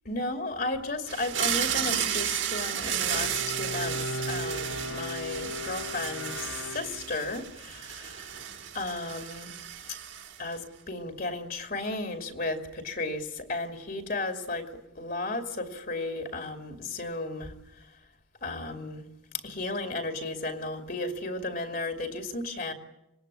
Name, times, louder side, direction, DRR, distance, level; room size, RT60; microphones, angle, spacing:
voice 1, 0.0-8.3 8.7-9.5 10.4-14.7 14.9-17.5 18.4-19.0 19.4-22.7, left 2 dB, 50° left, 6 dB, 2.7 m, -34 dB
sound 1, 1.1-10.5, right 9 dB, 70° right, 3.4 m, -33 dB
Bowed string instrument, 3.0-7.4, left 1 dB, 75° left, 1.3 m, -37 dB
25.5 x 20.5 x 9.8 m, 0.89 s
head